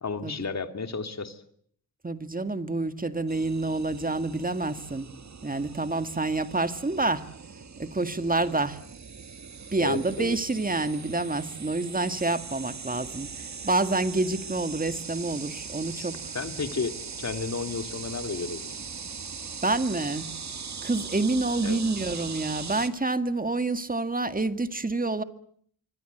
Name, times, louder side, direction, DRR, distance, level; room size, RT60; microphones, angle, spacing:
voice 1, 0.0-1.4 9.8-10.4 15.9-16.1 16.3-18.8 21.6-21.8, left 4 dB, 40° left, 2.6 m, -32 dB
voice 2, 2.0-5.1 5.4-7.2 7.8-8.8 9.7-16.3 19.6-20.3 20.8-25.2, right 2 dB, 20° right, 1.9 m, -28 dB
sound 1, 3.3-22.9, right 5 dB, 40° right, 1.9 m, -40 dB
26.0 x 24.5 x 8.0 m
cardioid pair, 85°, 42 cm